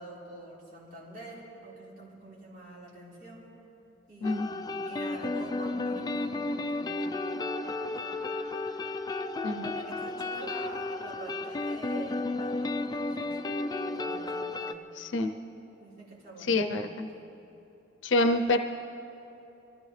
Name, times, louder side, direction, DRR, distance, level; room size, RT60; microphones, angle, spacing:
voice 1, 0.0-3.5 4.1-8.2 9.6-13.4 13.8-14.8 15.8-16.6 17.1-17.2, right 2 dB, 50° right, -7 dB, 4.5 m, -47 dB
sound 1, 4.2-14.7, left 2 dB, 20° left, 0.5 m, -33 dB
voice 2, 15.0-15.3 16.5-17.1 18.0-18.6, left 2 dB, 80° left, 6 dB, 0.7 m, -26 dB
24.5 x 15.0 x 3.3 m, 2.9 s
head